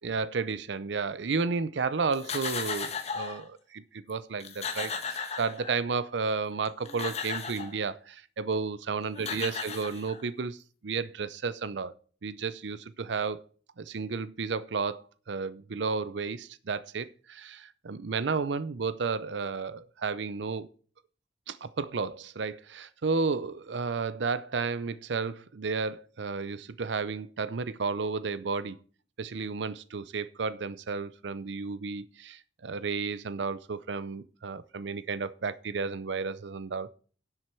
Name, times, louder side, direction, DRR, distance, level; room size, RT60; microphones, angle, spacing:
voice 1, 0.0-10.6 10.8-11.9 12.2-13.4 13.8-20.7 21.5-28.8 29.2-36.9, right 4 dB, 70° right, 0.6 m, -32 dB
sound 1, 2.1-3.4 4.1-4.2 4.4-6.0 6.6-7.8 8.8-8.9 9.2-10.4, left 5 dB, 35° left, 1.4 m, -35 dB
10.5 x 7.9 x 4.5 m
head